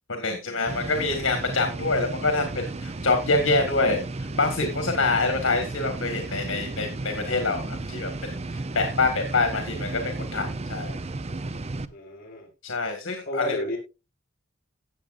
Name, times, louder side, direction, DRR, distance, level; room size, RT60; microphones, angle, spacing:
voice 1, 0.1-8.3 8.7-11.0 12.6-13.5, left 3 dB, 75° left, 5 dB, 1.8 m, -26 dB
sound 1, 0.7-11.8, right 2 dB, 30° right, 0.6 m, -33 dB
voice 2, 11.9-12.5 13.3-13.8, left 1 dB, 45° left, 0 dB, 5.6 m, -31 dB
17.0 x 7.2 x 2.5 m, 0.28 s
head